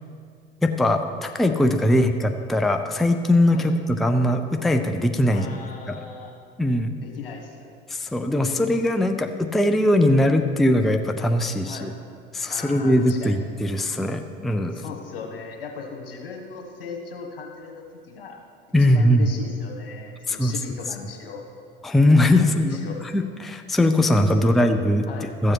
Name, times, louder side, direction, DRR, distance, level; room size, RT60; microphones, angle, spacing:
voice 1, 0.6-3.7 4.0-5.5 5.9-6.0 6.6-6.9 7.9-11.9 12.3-14.8 18.7-19.3 20.3-20.5 21.8-22.8 23.1-25.5, left 1 dB, ahead, 6 dB, 0.5 m, -20 dB
voice 2, 5.3-6.3 7.0-7.7 11.5-11.9 12.5-13.4 14.7-18.4 18.8-21.5 22.4-23.0 24.3-24.6 25.1-25.3, left 5 dB, 70° left, 2 dB, 1.5 m, -38 dB
13.0 x 7.5 x 4.6 m, 2.2 s
figure-of-eight pair, 65°, 29 cm